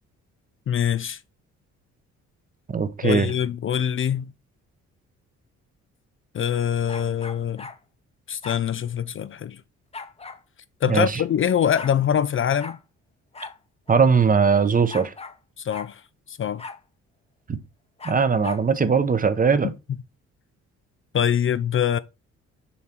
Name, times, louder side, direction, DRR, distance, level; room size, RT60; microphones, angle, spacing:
voice 1, 0.7-1.2 3.0-4.3 6.3-7.7 8.3-9.6 10.8-12.8 15.6-16.0 16.3-16.6 21.1-22.0, left 9 dB, 45° left, 0.5 m, -24 dB
voice 2, 2.7-3.3 10.8-11.2 13.9-15.1 17.5-17.6 18.0-19.7, right 5 dB, 30° right, 0.9 m, -20 dB
sound 1, 6.9-7.8 8.4-8.6 9.9-10.4 11.3-11.4 11.6-12.0 12.6-12.8 13.3-13.6 13.9-14.0 14.9-15.4 15.7-15.9 16.6-16.8 18.0-18.7, left 4 dB, 20° left, 0.9 m, -39 dB
7.1 x 4.9 x 4.5 m
cardioid pair, 90°, 30 cm